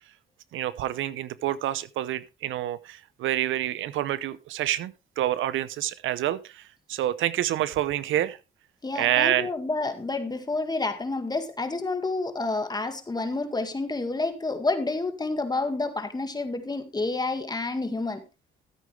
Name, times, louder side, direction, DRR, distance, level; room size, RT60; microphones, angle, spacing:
voice 1, 0.5-6.6 6.9-8.4 8.9-9.5, right 13 dB, 80° right, 0.7 m, -27 dB
voice 2, 8.8-18.2, left 3 dB, 20° left, 1.9 m, -29 dB
13.5 x 8.4 x 3.3 m
cardioid pair, 90°, 20 cm